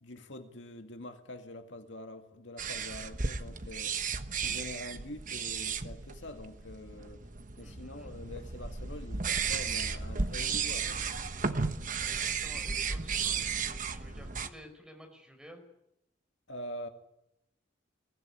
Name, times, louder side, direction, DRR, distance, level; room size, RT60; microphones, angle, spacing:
voice 1, 0.0-4.0 4.4-7.2 7.6-11.2 16.5-16.9, left 1 dB, 80° left, 2.2 m, -45 dB
sound 1, 2.6-14.5, right 5 dB, 45° right, 1.2 m, -34 dB
voice 2, 7.6-8.1 11.9-15.6, equal, 5° right, 5.1 m, -52 dB
22.5 x 17.0 x 10.0 m
head